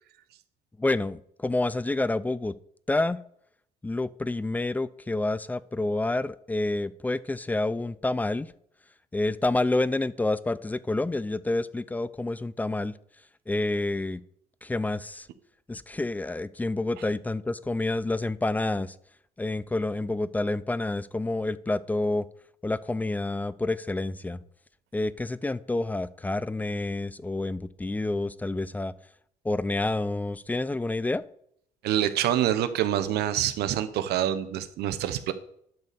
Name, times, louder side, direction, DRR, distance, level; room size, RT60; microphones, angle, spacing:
voice 1, 0.8-2.6 2.9-3.2 3.8-8.5 9.1-12.9 13.5-14.2 14.6-15.3 15.7-18.9 19.4-22.3 22.6-24.4 24.9-28.9 29.4-31.2, left 2 dB, 10° left, 17 dB, 0.3 m, -28 dB
voice 2, 31.8-35.3, right 11 dB, 75° right, 12 dB, 0.9 m, -26 dB
10.5 x 4.2 x 6.6 m, 0.69 s
cardioid pair, 110°, 17 cm